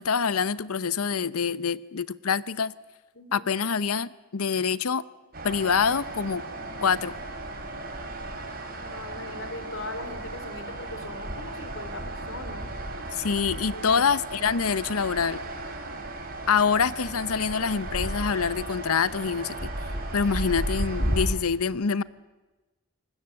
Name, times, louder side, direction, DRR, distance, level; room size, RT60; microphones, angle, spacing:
voice 1, 0.0-2.7 3.3-5.0 5.4-6.4 6.8-7.1 13.1-15.4 16.5-19.7 20.1-22.0, left 6 dB, 90° left, 0.8 m, -25 dB
voice 2, 3.2-3.5 8.8-12.7 13.7-14.0, left 2 dB, 60° left, 3.4 m, -40 dB
sound 1, 5.3-21.3, right 1 dB, 40° right, 3.9 m, -34 dB
26.0 x 20.0 x 7.8 m
head